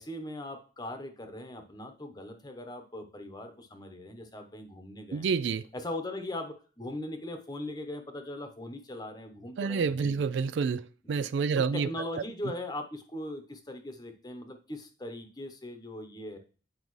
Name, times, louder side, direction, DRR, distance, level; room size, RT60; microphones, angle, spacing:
voice 1, 0.0-5.3 5.7-10.3 11.0-11.2 11.5-16.4, left 1 dB, 20° left, 1.0 m, -40 dB
voice 2, 5.1-5.6 9.6-10.8 11.1-11.9, right 5 dB, 65° right, 0.3 m, -28 dB
9.3 x 5.2 x 3.2 m
head